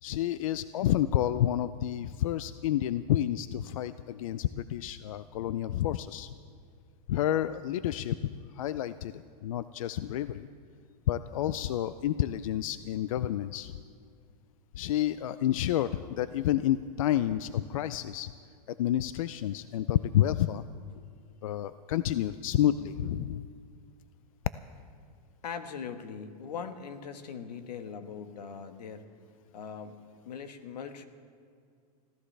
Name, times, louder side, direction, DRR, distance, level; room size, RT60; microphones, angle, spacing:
voice 1, 0.0-6.3 7.1-10.5 11.1-13.7 14.8-18.3 18.7-20.6 21.4-23.4, left 12 dB, 60° left, 14 dB, 0.4 m, -29 dB
voice 2, 25.4-29.1 29.5-31.1, left 6 dB, 85° left, 8 dB, 1.4 m, -41 dB
24.5 x 15.5 x 3.3 m, 2.2 s
supercardioid pair, 170°, 20 cm